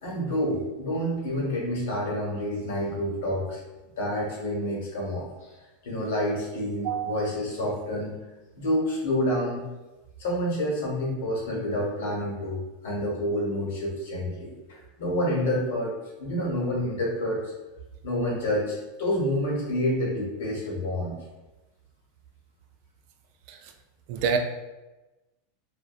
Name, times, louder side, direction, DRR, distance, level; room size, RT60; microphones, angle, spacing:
voice 1, 0.0-3.6 4.0-5.3 5.8-8.2 8.5-9.6 10.2-17.4 18.0-21.1, left 1 dB, 85° left, -3 dB, 0.9 m, -28 dB
voice 2, 6.8-7.2 23.5-23.6 24.1-24.4, right 6 dB, 55° right, 5 dB, 0.3 m, -27 dB
2.7 x 2.1 x 2.3 m, 1.1 s
supercardioid pair, 150°, 0 cm